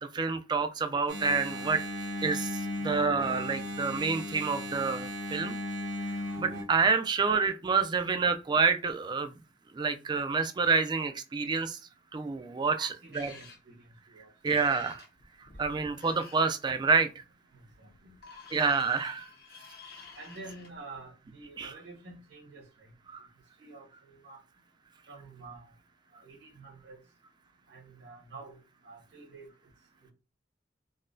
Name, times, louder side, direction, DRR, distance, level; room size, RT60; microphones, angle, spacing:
voice 1, 0.0-1.8 2.2-5.6 6.0-6.1 6.4-9.4 9.7-11.8 12.1-13.3 14.4-15.0 15.6-17.2 18.5-19.3 21.6-21.7 23.1-23.3, right 4 dB, 25° right, 0.3 m, -28 dB
Engine, 1.1-6.6, left 1 dB, 85° right, 1.2 m, -36 dB
voice 2, 12.7-13.8 14.1-14.3 15.5-15.6 17.8-18.1 20.1-22.9 23.6-24.4 25.1-25.6 26.2-27.0 27.7-28.6 28.8-29.5, right 3 dB, 70° right, 1.2 m, -48 dB
sound 1, 13.1-13.6 14.5-16.4 17.9-20.7, left 4 dB, 60° left, 0.9 m, -50 dB
3.9 x 2.2 x 2.5 m
head